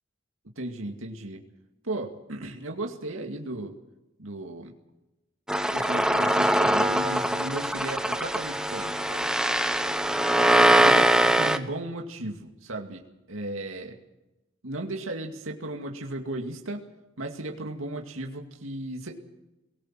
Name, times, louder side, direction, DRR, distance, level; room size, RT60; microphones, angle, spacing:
voice 1, 0.6-1.4 1.8-3.7 4.2-4.7 5.7-9.2 10.7-14.0 14.6-16.8 17.2-19.2, right 1 dB, 85° right, 2 dB, 2.3 m, -35 dB
sound 1, 5.5-11.6, right 1 dB, 5° right, 1.0 m, -22 dB
22.0 x 18.5 x 7.6 m, 0.96 s
head